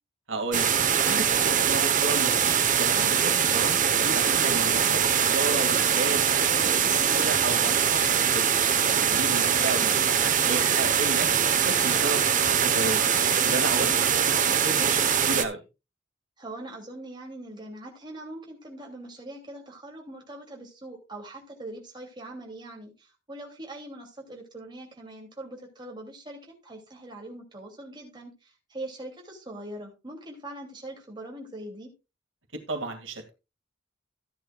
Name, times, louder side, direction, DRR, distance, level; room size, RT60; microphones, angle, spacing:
voice 1, 0.3-0.7 1.0-2.3 2.7-8.0 8.3-8.5 8.9-11.3 11.5-13.1 13.4-15.6 32.5-33.3, right 2 dB, 90° right, 2.2 m, -33 dB
sound 1, 0.5-15.4, right 7 dB, 40° right, 1.0 m, -23 dB
voice 2, 9.2-9.6 13.7-14.1 16.4-31.9, right 1 dB, 25° right, 2.8 m, -42 dB
14.0 x 10.0 x 2.4 m
head